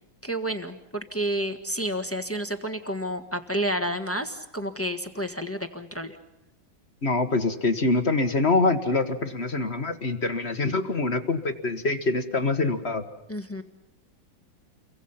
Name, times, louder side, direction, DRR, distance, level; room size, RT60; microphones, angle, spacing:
voice 1, 0.2-6.2 13.3-13.6, right 1 dB, 10° left, 7 dB, 1.3 m, -30 dB
voice 2, 7.0-13.0, left 3 dB, 35° left, 9 dB, 1.5 m, -25 dB
30.0 x 24.0 x 5.7 m, 0.91 s
omnidirectional pair, 2.2 m